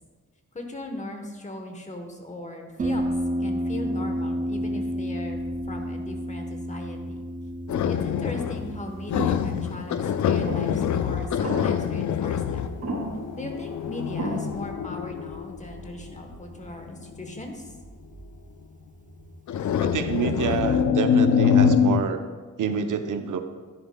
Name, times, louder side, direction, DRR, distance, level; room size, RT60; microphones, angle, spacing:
voice 1, 0.5-3.1 3.4-5.4 5.7-7.2 7.9-12.7 13.3-17.7, left 1 dB, 20° left, 4 dB, 1.0 m, -38 dB
Harp, 2.8-20.3, equal, 25° right, 0.5 m, -34 dB
sound 1, 7.7-8.8 9.1-16.0 16.9-17.2 19.5-22.0, left 7 dB, 60° left, 0.5 m, -24 dB
sound 2, 9.1-9.4 10.4-10.8 11.4-12.0 12.8-13.3 14.2-14.7, right 1 dB, 50° right, 2.2 m, -32 dB
voice 2, 19.8-22.2 22.6-23.4, right 7 dB, 70° right, 7 dB, 0.7 m, -27 dB
10.5 x 10.5 x 2.2 m, 1.4 s
wide cardioid pair, 135°, 32 cm